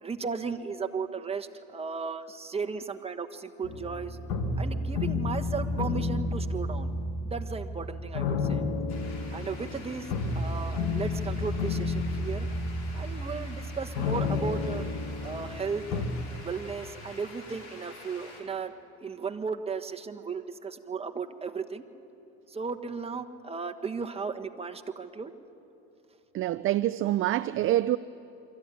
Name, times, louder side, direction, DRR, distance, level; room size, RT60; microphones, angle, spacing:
voice 1, 0.0-4.2 4.6-6.9 7.2-8.6 9.3-10.1 10.3-12.5 12.9-14.8 15.2-16.0 16.4-18.7 19.0-21.8 22.5-25.3, right 5 dB, 20° right, 1.3 m, -35 dB
sound 1, 3.6-16.1, left 3 dB, 80° left, 2.0 m, -31 dB
sound 2, 8.9-18.4, left 2 dB, 60° left, 5.4 m, -48 dB
voice 2, 26.3-28.0, right 14 dB, 45° right, 0.5 m, -26 dB
24.0 x 14.5 x 9.8 m
supercardioid pair, 90°, 29 cm